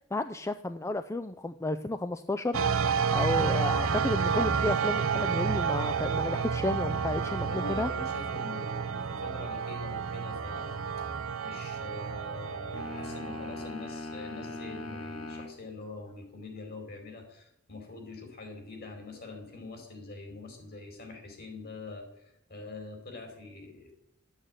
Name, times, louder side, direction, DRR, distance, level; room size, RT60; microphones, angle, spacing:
voice 1, 0.1-2.6 3.1-7.9, left 2 dB, 15° left, 10 dB, 0.5 m, -32 dB
sound 1, 2.5-13.7, right 6 dB, 80° right, 0.8 m, -30 dB
voice 2, 7.4-10.8 11.4-23.9, left 3 dB, 50° left, 4 dB, 4.5 m, -44 dB
sound 2, 12.7-15.6, left 2 dB, 80° left, 2.6 m, -40 dB
12.5 x 8.9 x 9.0 m, 0.78 s
head